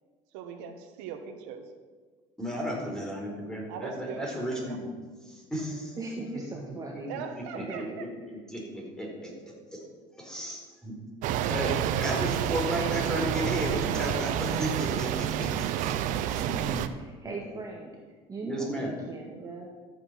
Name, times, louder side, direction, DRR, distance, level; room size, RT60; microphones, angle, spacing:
voice 1, 0.3-1.6 3.7-4.8 7.1-8.1, right 7 dB, 80° right, 6 dB, 1.4 m, -40 dB
voice 2, 2.4-4.9 5.3-6.0 6.5-7.8 8.3-9.8 10.2-10.9 11.5-15.9 16.3-16.8 18.4-18.9, equal, 5° left, -1 dB, 4.3 m, -34 dB
voice 3, 6.0-7.1 7.5-7.8 16.9-17.9 18.3-19.7, right 3 dB, 25° right, -1 dB, 1.8 m, -39 dB
sound 1, 11.2-16.9, right 10 dB, 65° right, 0.8 m, -29 dB
13.0 x 8.1 x 5.8 m, 1.4 s
supercardioid pair, 105°, 14 cm